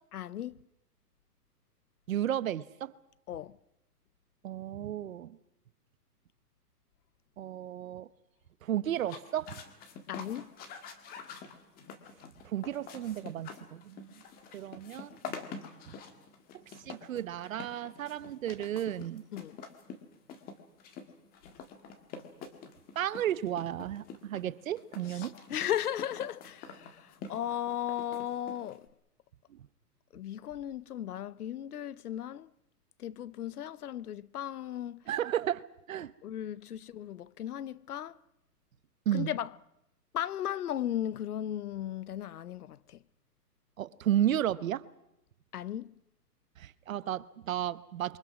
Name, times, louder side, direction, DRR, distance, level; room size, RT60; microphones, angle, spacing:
voice 1, 0.1-0.6 3.3-3.6 10.1-10.5 19.3-19.6 25.1-28.9 30.1-32.5 33.0-35.0 36.2-38.1 39.1-39.5 40.1-43.0 45.5-45.9, left 11 dB, 65° left, 0.8 m, -36 dB
voice 2, 2.1-2.9 4.4-5.4 7.4-8.1 8.6-9.6 12.4-14.2 14.5-15.2 16.9-19.2 22.9-25.3 35.1-35.6 35.9-36.1 39.1-39.3 43.8-44.8 46.6-48.2, right 11 dB, 55° right, 1.0 m, -33 dB
sound 1, 9.0-28.9, left 5 dB, 20° left, 1.7 m, -47 dB
28.0 x 23.5 x 6.2 m
hypercardioid pair, 150°, 48 cm